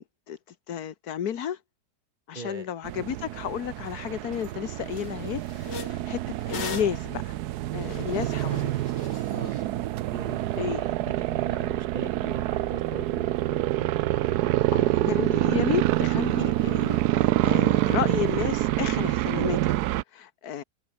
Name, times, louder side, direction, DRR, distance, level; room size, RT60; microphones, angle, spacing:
voice 1, 0.0-1.6 2.3-6.2 6.5-7.4 7.7-8.7 10.6-10.8 14.7-19.7 20.1-20.6, left 9 dB, 65° left, 1.6 m, -32 dB
voice 2, 2.3-2.7 9.3-9.6 10.1-13.9, right 4 dB, 35° right, 1.0 m, -40 dB
sound 1, 2.8-20.0, right 15 dB, 70° right, 1.1 m, -26 dB
sound 2, 3.9-4.0 4.3-4.5 4.9-9.6, left 6 dB, 80° left, 2.8 m, -41 dB
omnidirectional pair, 1.9 m